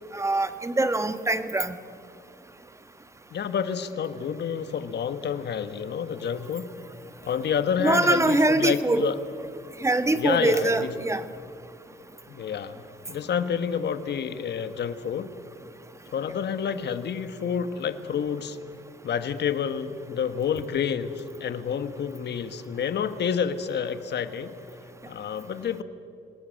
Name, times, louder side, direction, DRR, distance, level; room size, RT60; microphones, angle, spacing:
voice 1, 0.1-1.7 7.8-9.0 9.8-11.2, right 2 dB, 15° right, 10 dB, 1.3 m, -23 dB
voice 2, 3.3-6.6 7.2-9.2 10.1-10.9 12.3-12.8 13.1-15.3 16.1-18.6 19.0-24.5 25.1-25.8, left 7 dB, 60° left, 10 dB, 1.4 m, -29 dB
27.0 x 19.0 x 6.5 m, 2.5 s
cardioid pair, 90°, 20 cm